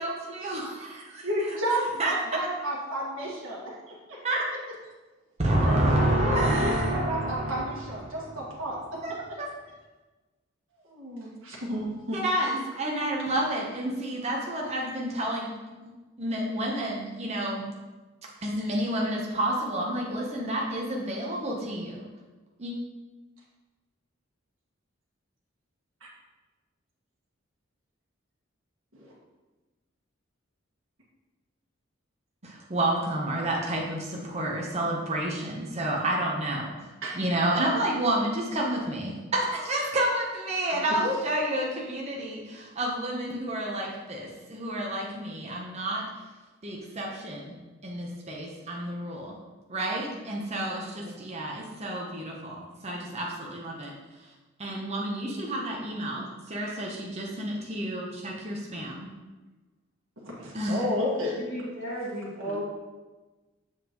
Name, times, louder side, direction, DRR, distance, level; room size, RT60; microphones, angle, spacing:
voice 1, 0.0-1.3 1.7-2.1 4.2-4.4 5.4-7.8 8.0-8.3 9.0-9.5 12.1-15.5 15.8-15.9 16.2-17.6 18.4-22.0 22.6-22.7 32.4-36.7 37.1-46.0 46.6-47.6 47.8-49.3 49.7-53.9 54.6-59.1 60.5-60.9, right 1 dB, 30° right, -2 dB, 0.9 m, -29 dB
voice 2, 1.2-4.2 5.6-9.0 10.8-12.2 29.0-29.1 37.0-37.2 40.7-41.1 50.9-51.1 60.2-61.4 62.4-62.6, equal, 70° right, -6 dB, 1.7 m, -32 dB
voice 3, 61.4-62.6, equal, 55° left, -6 dB, 2.3 m, -36 dB
7.1 x 5.8 x 3.0 m, 1.2 s
head